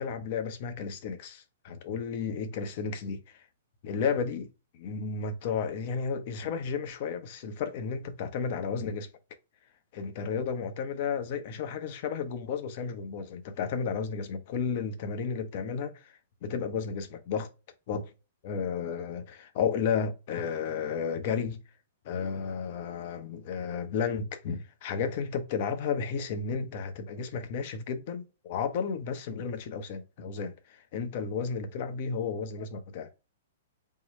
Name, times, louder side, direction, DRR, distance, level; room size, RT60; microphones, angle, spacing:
voice 1, 0.0-3.4 3.8-9.1 9.9-16.1 16.4-17.5 17.9-18.1 18.4-21.6 22.0-33.2, left 6 dB, 50° left, 0.7 m, -33 dB
3.7 x 2.3 x 4.1 m
hypercardioid pair, 115°, 0 cm